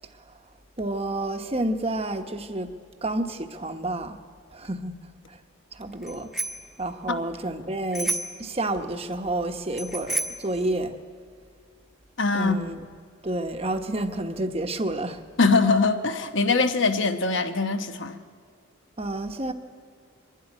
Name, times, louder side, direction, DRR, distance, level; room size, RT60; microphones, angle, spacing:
voice 1, 0.8-2.7 3.0-4.2 4.5-4.9 5.3-5.4 5.7-6.3 6.8-10.9 12.3-12.8 13.2-15.2 19.0-19.5, right 1 dB, 30° right, 1.0 m, -29 dB
Bicycle bell, 6.0-6.7 7.9-8.5 9.7-10.5, right 2 dB, ahead, 1.1 m, -30 dB
voice 2, 12.2-12.6 15.4-18.2, left 3 dB, 60° left, 1.0 m, -22 dB
23.0 x 12.5 x 9.9 m
head